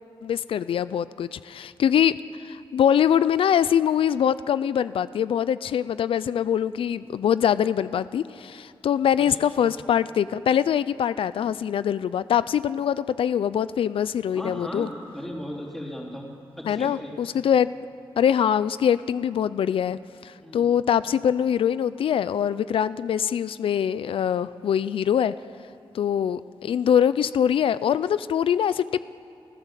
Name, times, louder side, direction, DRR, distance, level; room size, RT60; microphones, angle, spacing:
voice 1, 0.2-2.1 2.4-14.9 16.7-17.7 18.2-25.3 25.9-29.0, left 9 dB, 90° left, 16 dB, 0.4 m, -23 dB
voice 2, 14.3-16.3 16.6-17.3 20.4-20.7, equal, 5° left, -2 dB, 3.6 m, -36 dB
29.0 x 15.5 x 7.5 m, 2.8 s
wide cardioid pair, 140°, 9 cm